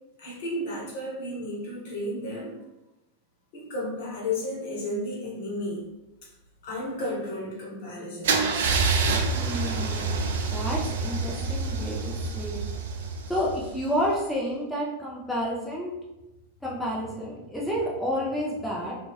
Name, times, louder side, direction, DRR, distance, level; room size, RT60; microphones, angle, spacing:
voice 1, 0.2-2.6 3.5-5.8 6.6-8.6, left 1 dB, 50° left, -4 dB, 0.9 m, -33 dB
Car / Engine starting / Idling, 8.2-14.1, right 4 dB, 60° right, 0.3 m, -27 dB
voice 2, 9.3-12.7 13.3-15.9 16.6-18.9, equal, 5° left, -6 dB, 0.6 m, -30 dB
2.8 x 2.2 x 2.9 m, 0.98 s
figure-of-eight pair, 90°, 0 cm